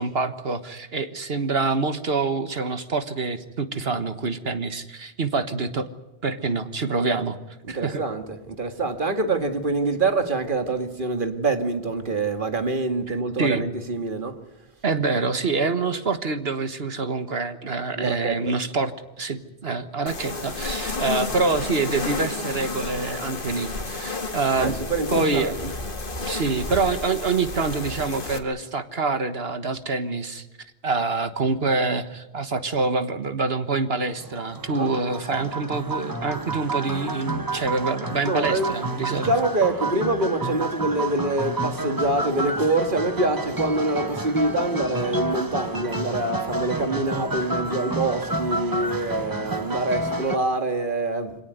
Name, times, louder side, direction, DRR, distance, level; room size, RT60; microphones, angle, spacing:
voice 1, 0.0-5.9 6.2-7.4 7.7-8.1 13.1-13.7 14.8-18.9 19.2-24.8 25.1-25.7 26.2-30.5 30.8-39.3, right 3 dB, 70° right, 1.6 m, -26 dB
voice 2, 7.7-14.4 18.0-18.6 24.6-25.5 34.7-34.9 38.2-51.4, right 2 dB, 50° right, 2.1 m, -25 dB
sound 1, 20.1-28.4, left 3 dB, 55° left, 2.3 m, -31 dB
sound 2, 34.2-50.4, right 2 dB, 20° right, 1.2 m, -30 dB
25.5 x 18.0 x 9.5 m
omnidirectional pair, 1.1 m